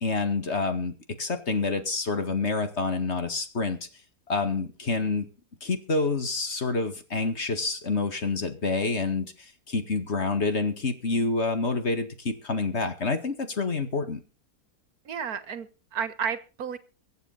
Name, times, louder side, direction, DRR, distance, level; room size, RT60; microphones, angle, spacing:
voice 1, 0.0-3.9 4.3-5.3 5.6-14.2, left 3 dB, 45° left, 8 dB, 2.1 m, -28 dB
voice 2, 15.1-16.8, right 7 dB, 75° right, 12 dB, 1.8 m, -32 dB
23.5 x 8.2 x 4.1 m, 0.33 s
omnidirectional pair, 1.6 m